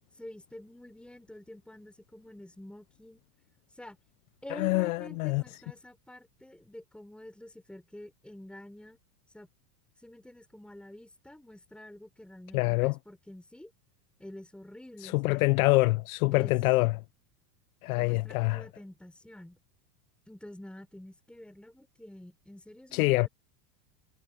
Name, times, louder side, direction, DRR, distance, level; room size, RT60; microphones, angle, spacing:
voice 1, 0.1-3.2 3.7-4.0 4.4-9.0 9.3-9.5 10.0-13.7 14.2-15.5 16.3-16.5 17.9-19.6 20.3-23.3, left 1 dB, ahead, 5.7 m, -48 dB
voice 2, 4.5-5.4 12.5-12.9 15.0-16.9 17.8-18.6 22.9-23.3, left 22 dB, 55° left, 0.7 m, -25 dB
supercardioid pair, 160°, 50 cm